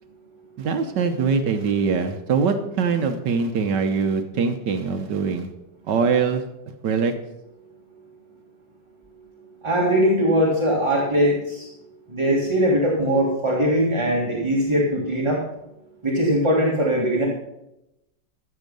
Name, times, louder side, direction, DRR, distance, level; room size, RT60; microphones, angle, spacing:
voice 1, 0.6-5.5 5.9-6.4 6.8-7.1, right 5 dB, 70° right, 7 dB, 1.5 m, -22 dB
voice 2, 9.6-11.7 12.1-15.4 16.0-17.3, equal, 15° right, -3 dB, 1.6 m, -21 dB
14.0 x 7.3 x 5.3 m, 0.91 s
omnidirectional pair, 2.0 m